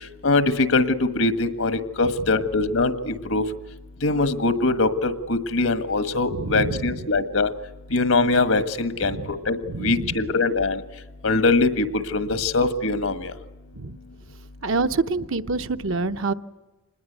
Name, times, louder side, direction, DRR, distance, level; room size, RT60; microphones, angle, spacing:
voice 1, 0.2-3.4 4.0-7.5 7.9-10.8 11.2-13.3, left 3 dB, 80° left, 11 dB, 1.6 m, -22 dB
voice 2, 6.3-7.0 9.0-9.3 9.6-10.2 13.7-14.0 14.6-16.3, right 3 dB, 70° right, 9 dB, 0.9 m, -27 dB
26.0 x 20.5 x 8.2 m, 1.1 s
head